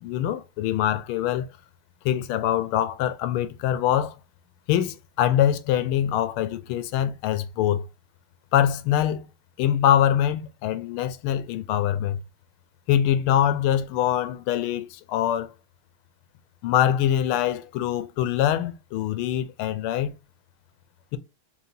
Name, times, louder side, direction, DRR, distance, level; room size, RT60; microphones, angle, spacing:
voice 1, 0.0-1.5 2.0-4.2 4.7-7.8 8.5-9.3 9.6-12.2 12.9-15.5 16.6-20.1, left 11 dB, 90° left, 1.5 m, -24 dB
4.6 x 2.8 x 2.6 m
omnidirectional pair, 2.3 m